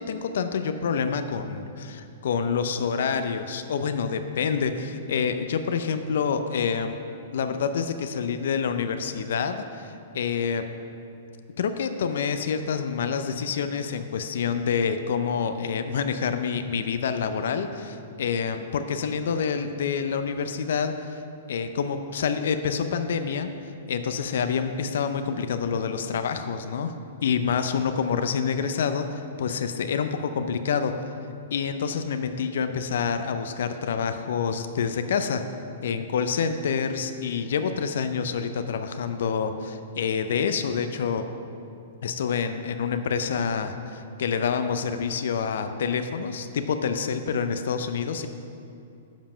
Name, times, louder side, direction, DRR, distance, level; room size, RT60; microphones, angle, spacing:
voice 1, 0.0-6.9 7.3-10.6 11.6-21.2 21.5-23.5 23.9-26.9 27.2-30.9 31.5-35.4 35.8-41.2 42.0-48.3, left 6 dB, 70° left, 8 dB, 0.5 m, -27 dB
7.3 x 5.4 x 7.2 m, 2.6 s
hypercardioid pair, 120°, 0 cm